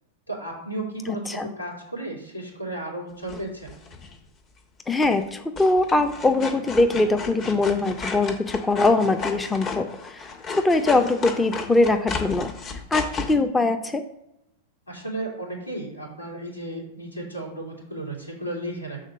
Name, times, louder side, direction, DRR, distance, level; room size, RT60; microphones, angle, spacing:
voice 1, 0.3-3.8 14.9-19.0, right 1 dB, 90° left, -2 dB, 2.2 m, -34 dB
voice 2, 1.1-1.5 4.9-10.3 10.6-14.0, left 2 dB, 10° left, 7 dB, 0.5 m, -22 dB
sound 1, 3.3-4.1 5.0-5.3 5.6-13.3, left 5 dB, 30° left, 1.1 m, -34 dB
6.5 x 3.9 x 6.2 m, 0.84 s
figure-of-eight pair, 95°, 0 cm